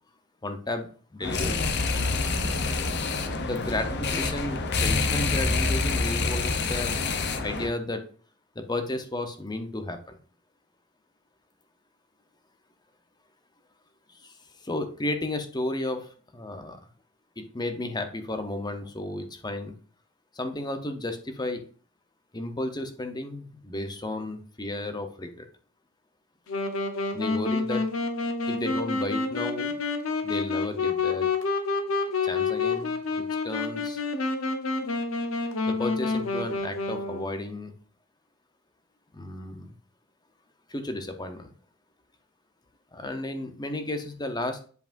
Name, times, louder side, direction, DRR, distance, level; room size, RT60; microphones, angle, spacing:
voice 1, 0.4-1.7 3.4-7.0 7.4-8.0 8.5-10.2 14.1-14.3 14.6-16.8 17.4-19.7 20.3-21.6 22.3-25.5 27.1-27.9 28.5-29.8 30.2-31.3 32.2-34.0 35.7-37.7 39.1-39.7 40.7-41.5 42.9-44.7, left 2 dB, 20° left, 7 dB, 0.8 m, -33 dB
sound 1, 1.2-7.7, left 3 dB, 55° left, 0.8 m, -27 dB
Wind instrument woodwind instrument, 26.5-37.4, left 3 dB, 75° left, 0.9 m, -28 dB
8.0 x 4.9 x 2.6 m, 0.42 s
head